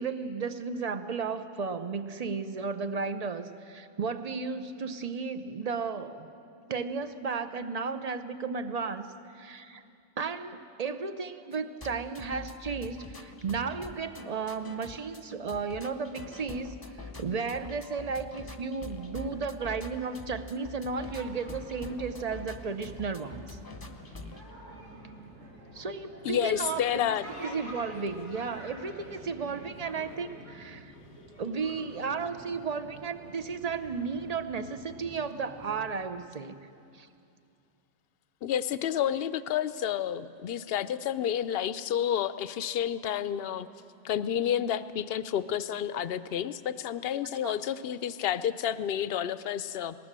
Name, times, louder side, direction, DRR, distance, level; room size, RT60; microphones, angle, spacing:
voice 1, 0.0-6.3 6.7-9.8 10.2-23.6 25.7-27.1 27.4-30.9 31.4-36.6 36.9-37.1 47.4-47.6, right 5 dB, 40° right, 10 dB, 0.8 m, -34 dB
sound 1, 11.5-24.4, left 2 dB, 20° left, 0.8 m, -45 dB
sound 2, 21.0-35.9, equal, 90° right, 4.7 m, -48 dB
voice 2, 26.2-27.3 38.4-43.7 44.0-50.0, left 9 dB, 60° left, 14 dB, 0.8 m, -30 dB
19.5 x 18.5 x 7.5 m, 2.5 s
omnidirectional pair, 1.2 m